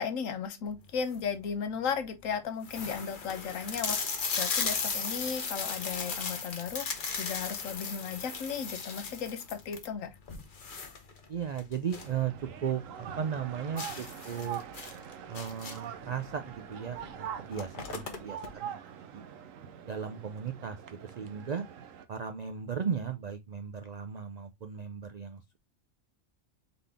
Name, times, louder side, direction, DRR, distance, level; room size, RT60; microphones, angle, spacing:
voice 1, 0.0-10.1, left 6 dB, 90° left, 1.2 m, -35 dB
sound 1, 0.8-1.3 1.9-2.0 2.2-2.3 2.6-12.2 12.5-12.6 13.0-13.1 13.8-16.0 16.9-17.1 17.3-18.5, left 5 dB, 45° left, 0.9 m, -36 dB
voice 2, 11.3-12.3 12.6-12.8 13.2-14.6 15.3-18.8 19.1-19.2 19.8-20.8 21.0-21.6 22.1-25.6, right 7 dB, 70° right, 0.4 m, -36 dB
sound 2, 12.0-22.0, right 9 dB, 90° right, 1.1 m, -44 dB
4.0 x 3.7 x 3.3 m
omnidirectional pair, 1.3 m